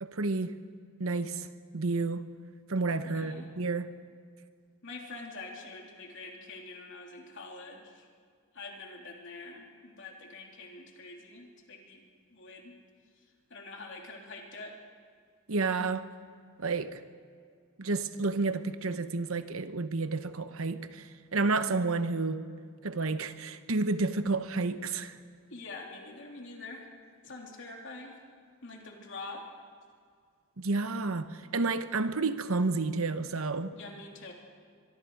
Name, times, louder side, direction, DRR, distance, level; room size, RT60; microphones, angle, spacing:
voice 1, 0.0-0.6 1.0-1.5 1.7-2.3 2.7-3.9 15.5-16.1 16.6-17.0 17.8-22.5 22.8-25.2 30.6-33.7, right 3 dB, 85° right, 1.0 m, -30 dB
voice 2, 3.0-3.5 4.8-8.1 8.5-12.7 13.1-13.2 13.5-14.8 25.5-26.9 27.2-28.2 28.6-29.5 33.7-34.3, left 3 dB, 60° left, 3.2 m, -45 dB
23.5 x 23.5 x 4.8 m
head